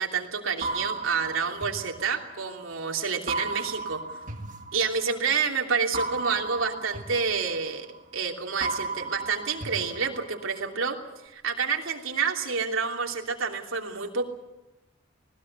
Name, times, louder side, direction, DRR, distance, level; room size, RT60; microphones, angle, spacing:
voice 1, 0.0-4.0 4.7-7.9 8.1-11.0 11.2-14.2, right 5 dB, 80° right, 1 dB, 3.0 m, -28 dB
sound 1, 0.6-2.7 3.3-5.3 5.9-8.2 8.6-10.7, right 3 dB, 40° right, 1.9 m, -35 dB
20.0 x 19.5 x 8.2 m, 0.93 s
head